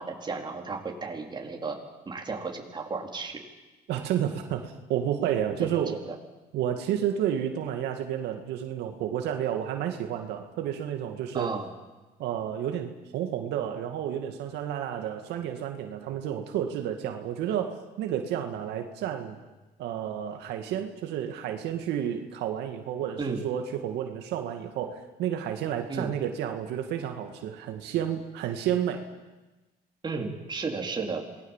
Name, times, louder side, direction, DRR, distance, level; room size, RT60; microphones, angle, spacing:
voice 1, 0.0-1.8 2.1-3.4 5.6-6.1 11.3-11.7 23.2-23.4 25.9-26.1 30.0-31.2, right 4 dB, 25° right, 1 dB, 4.0 m, -33 dB
voice 2, 3.9-6.0 6.5-11.5 12.2-19.4 19.8-29.0, right 10 dB, 85° right, 4 dB, 2.2 m, -31 dB
27.5 x 20.0 x 7.4 m, 1.1 s
cardioid pair, 110°, 17 cm